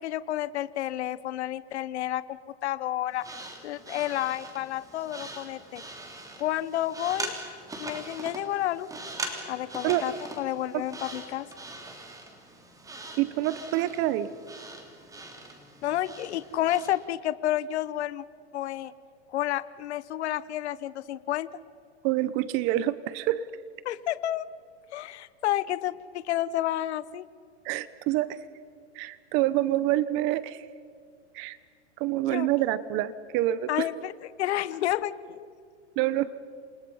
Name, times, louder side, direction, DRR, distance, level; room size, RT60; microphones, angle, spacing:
voice 1, 0.0-3.3 3.6-5.8 6.4-7.3 7.8-8.9 9.5-11.5 15.8-18.2 18.5-18.9 19.3-21.5 23.8-24.4 24.9-27.3 32.3-32.5 33.7-34.1 34.4-35.5, left 13 dB, 70° left, 16 dB, 1.0 m, -30 dB
sound 1, 3.1-17.0, right 2 dB, 10° right, 3.2 m, -41 dB
voice 2, 13.2-14.3 22.0-23.5 27.6-28.4 28.9-30.7 31.3-31.6 32.0-33.9 36.0-36.4, right 14 dB, 35° right, 16 dB, 0.9 m, -27 dB
28.5 x 27.0 x 5.6 m, 2.2 s
hypercardioid pair, 140°, 35 cm